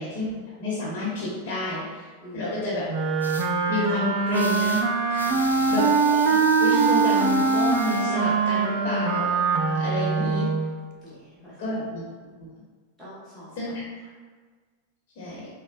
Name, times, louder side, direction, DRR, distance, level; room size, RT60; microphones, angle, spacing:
voice 1, 0.0-2.1 2.3-2.9 3.7-9.3 9.7-10.5 11.6-12.0 13.5-13.9 15.2-15.5, left 2 dB, 45° left, -6 dB, 1.1 m, -30 dB
Wind instrument woodwind instrument, 2.9-10.7, right 5 dB, 45° right, 0.4 m, -23 dB
sound 1, 3.2-3.5 4.3-4.8 5.1-8.0, left 3 dB, 80° left, 0.3 m, -38 dB
voice 2, 5.2-5.8 11.0-11.8 13.0-13.8, equal, 10° right, -10 dB, 0.9 m, -44 dB
5.2 x 2.2 x 2.5 m, 1.5 s
figure-of-eight pair, 90°, 0 cm